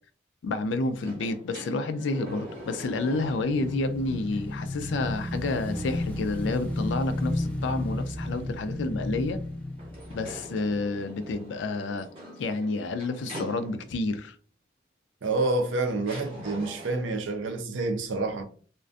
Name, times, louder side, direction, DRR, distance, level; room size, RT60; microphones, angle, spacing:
voice 1, 0.4-9.4 10.1-12.1 12.4-14.4, left 3 dB, 80° left, 0.3 m, -29 dB
sound 1, 1.0-3.9 4.3-4.4 9.8-14.1 15.2-15.3 16.0-17.2, right 1 dB, 30° right, 0.7 m, -44 dB
Motorcycle / Engine, 2.6-11.1, left 1 dB, 10° left, 0.4 m, -33 dB
voice 2, 15.2-18.4, right 2 dB, 90° right, 0.5 m, -28 dB
2.4 x 2.2 x 2.4 m
head